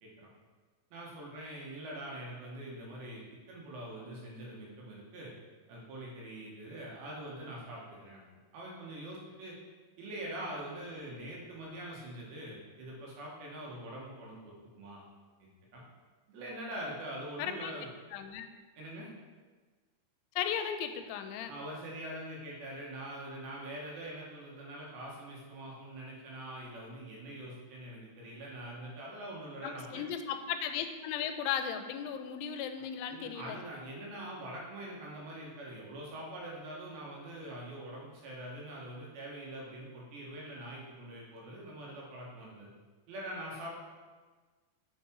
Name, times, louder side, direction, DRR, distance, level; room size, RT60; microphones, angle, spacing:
voice 1, 0.9-3.2 3.5-5.3 5.7-8.2 8.5-9.6 10.0-15.0 15.4-15.8 16.3-17.9 18.8-19.1 21.5-30.0 33.1-42.7 43.1-43.8, right 1 dB, 70° right, -3 dB, 3.8 m, -44 dB
voice 2, 17.4-17.7 18.1-18.5 20.4-21.5 29.6-33.6, left 8 dB, 90° left, 8 dB, 3.0 m, -36 dB
7.4 x 7.2 x 4.7 m, 1.4 s
omnidirectional pair, 5.3 m